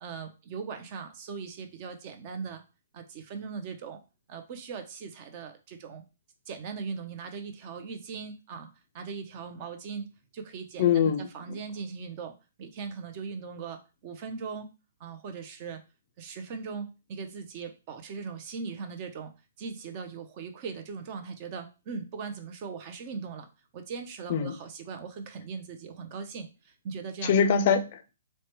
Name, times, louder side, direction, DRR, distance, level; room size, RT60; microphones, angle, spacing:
voice 1, 0.0-2.6 2.9-4.0 4.3-6.0 6.5-8.7 8.9-10.8 11.2-14.7 15.0-15.8 16.2-19.3 19.6-23.5 23.7-27.3, right 5 dB, 40° right, 7 dB, 0.5 m, -39 dB
voice 2, 10.8-11.3 24.3-24.5 27.2-28.1, left 7 dB, 45° left, 8 dB, 0.4 m, -23 dB
3.1 x 2.1 x 3.0 m, 0.30 s
hypercardioid pair, 135°, 0 cm